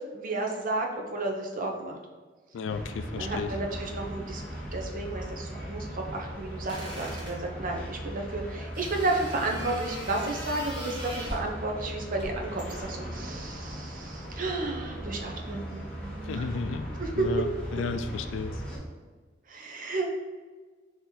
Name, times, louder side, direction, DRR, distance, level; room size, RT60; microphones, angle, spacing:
voice 1, 0.0-2.0 3.1-4.4 4.7-16.5 17.0-17.3 19.5-20.1, right 2 dB, 45° right, 1 dB, 0.7 m, -32 dB
voice 2, 2.5-3.5 16.2-16.9 17.2-18.6, left 4 dB, 85° left, 9 dB, 0.3 m, -33 dB
sound 1, 2.7-18.8, right 1 dB, 5° left, 0.9 m, -38 dB
sound 2, 6.7-7.4 8.7-11.5 12.2-13.0, equal, 25° right, 1.1 m, -40 dB
3.8 x 2.9 x 4.2 m, 1.4 s
head